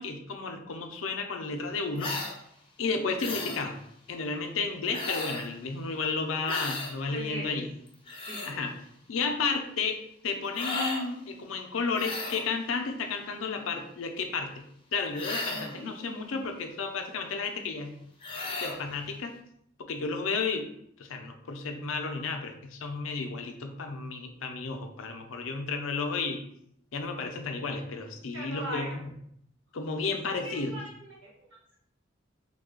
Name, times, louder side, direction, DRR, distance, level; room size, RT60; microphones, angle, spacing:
voice 1, 0.0-2.1 2.8-3.8 4.1-7.7 8.4-8.7 9.1-14.5 14.9-18.0 18.5-19.3 19.9-20.7 21.0-26.4 26.9-29.1 29.7-30.8, left 4 dB, 85° left, 5 dB, 0.5 m, -32 dB
sound 1, 2.0-2.4 3.2-3.6 4.9-5.5 6.5-6.9 7.9-8.5 10.5-11.0 11.9-12.5 15.1-15.8 18.2-18.8, left 2 dB, 25° left, 0.6 m, -34 dB
voice 2, 7.1-7.6 8.2-8.6 15.5-16.4 28.3-29.0 30.4-31.5, equal, 85° right, -4 dB, 1.4 m, -40 dB
3.2 x 2.3 x 3.7 m, 0.71 s
head